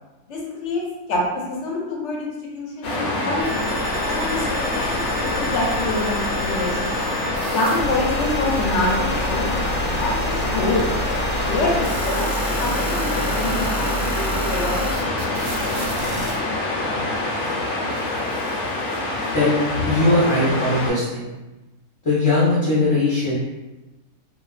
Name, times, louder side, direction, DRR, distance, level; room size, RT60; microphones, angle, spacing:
voice 1, 0.3-0.8 1.1-1.2 1.5-3.7 4.1-7.0 7.4-10.8 11.5-15.2, left 2 dB, 65° left, -2 dB, 0.8 m, -26 dB
Waves surf, 2.8-20.9, left 2 dB, 90° left, 1.1 m, -25 dB
sound 1, 3.4-16.4, right 1 dB, 65° right, 0.8 m, -30 dB
voice 2, 19.3-21.3 22.0-23.3, left 2 dB, 35° left, -11 dB, 0.5 m, -19 dB
2.4 x 2.3 x 2.3 m, 1.1 s
omnidirectional pair, 1.5 m